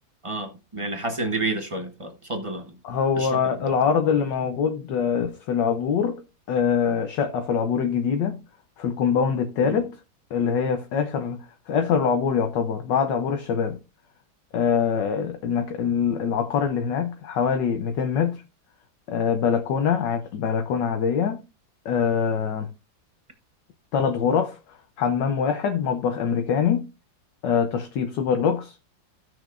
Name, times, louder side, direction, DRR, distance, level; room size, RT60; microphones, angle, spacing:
voice 1, 0.2-2.8 3.1-3.4 3.7-3.8 9.6-9.8, right 2 dB, 20° right, 0.9 m, -30 dB
voice 2, 2.8-6.2 6.5-8.4 8.8-9.9 10.3-13.8 14.5-18.4 19.1-21.4 21.8-22.7 23.9-24.6 25.0-26.9 27.4-28.8, left 7 dB, 70° left, 1.5 m, -24 dB
16.0 x 6.1 x 2.5 m
omnidirectional pair, 2.1 m